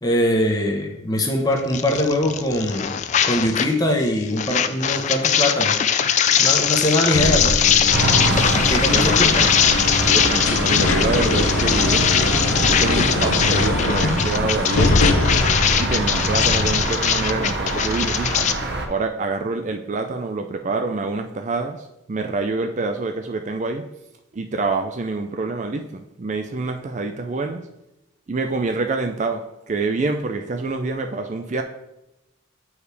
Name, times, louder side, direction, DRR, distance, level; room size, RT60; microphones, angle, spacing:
voice 1, 0.0-3.0 3.2-5.8 6.4-7.6 8.6-9.3, left 1 dB, 20° left, 2 dB, 0.9 m, -22 dB
sound 1, 1.7-3.7 4.0-18.5, left 8 dB, 35° left, 0.3 m, -21 dB
sound 2, 7.1-16.8, left 2 dB, 85° left, 0.8 m, -23 dB
sound 3, 7.9-18.9, right 2 dB, 55° right, 0.8 m, -25 dB
voice 2, 8.9-9.5 10.1-12.1 12.7-15.0 15.8-18.5 18.9-23.9 24.3-27.6 28.3-31.6, right 3 dB, 35° right, 5 dB, 0.4 m, -26 dB
8.3 x 4.7 x 3.4 m, 0.91 s
head